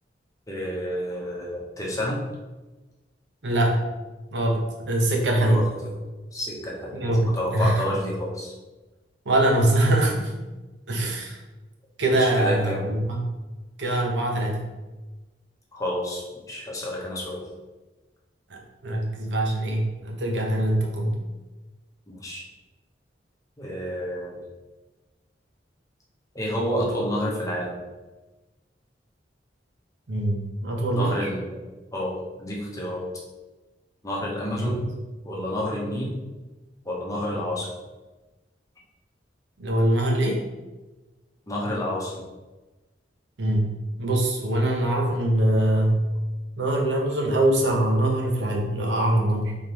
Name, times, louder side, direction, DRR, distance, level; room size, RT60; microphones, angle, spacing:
voice 1, 0.5-2.2 5.4-5.7 6.3-8.5 12.1-12.8 15.7-17.5 22.1-22.5 23.6-24.4 26.3-27.8 30.9-31.6 31.9-33.1 34.0-34.8 35.2-36.1 36.8-37.7 41.5-42.2, equal, 20° left, -3 dB, 0.8 m, -29 dB
voice 2, 3.4-3.9 4.3-5.6 6.9-7.8 9.3-10.3 10.9-11.4 12.0-13.3 13.8-14.6 18.5-21.2 30.1-31.3 34.6-34.8 39.6-40.4 43.4-46.1 46.6-49.6, right 1 dB, 80° right, 0 dB, 0.8 m, -23 dB
3.5 x 3.5 x 2.9 m, 1.2 s
head